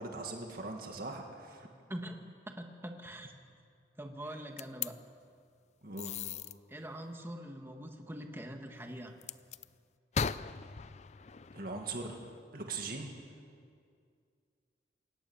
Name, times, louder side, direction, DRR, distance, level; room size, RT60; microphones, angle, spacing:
voice 1, 0.0-1.7 5.8-6.1 11.5-12.2 12.5-13.1, right 3 dB, 50° right, 2 dB, 2.1 m, -40 dB
voice 2, 1.9-3.3 4.0-5.0 6.7-9.2, right 1 dB, 15° right, 4 dB, 1.7 m, -44 dB
sound 1, 4.6-4.9 6.0-6.5 9.2-9.7 10.1-12.4, left 6 dB, 35° left, 0.4 m, -38 dB
25.0 x 18.5 x 7.2 m, 2.2 s
head